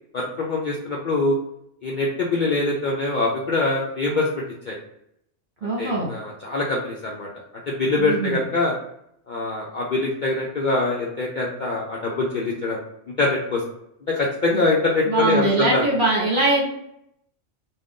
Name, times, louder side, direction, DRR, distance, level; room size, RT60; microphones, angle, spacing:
voice 1, 0.1-1.4 1.8-4.8 5.6-7.3 7.7-8.7 9.3-12.8 13.2-13.6 14.1-15.8, left 2 dB, 55° left, -3 dB, 0.5 m, -24 dB
voice 2, 5.6-6.1 8.0-8.4 15.1-16.8, right 2 dB, 45° right, -3 dB, 1.1 m, -22 dB
2.5 x 2.3 x 3.4 m, 0.75 s
omnidirectional pair, 1.3 m